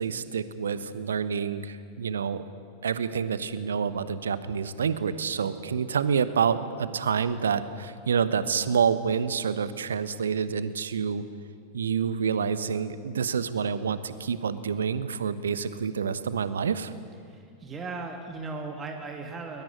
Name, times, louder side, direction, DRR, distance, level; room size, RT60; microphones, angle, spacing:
voice 1, 0.0-2.4 2.8-11.2 11.7-16.9, right 6 dB, 70° right, 14 dB, 1.1 m, -28 dB
voice 2, 17.2-19.6, right 3 dB, 20° right, 3 dB, 2.4 m, -37 dB
21.5 x 21.0 x 9.7 m, 2.3 s
figure-of-eight pair, 90°, 0 cm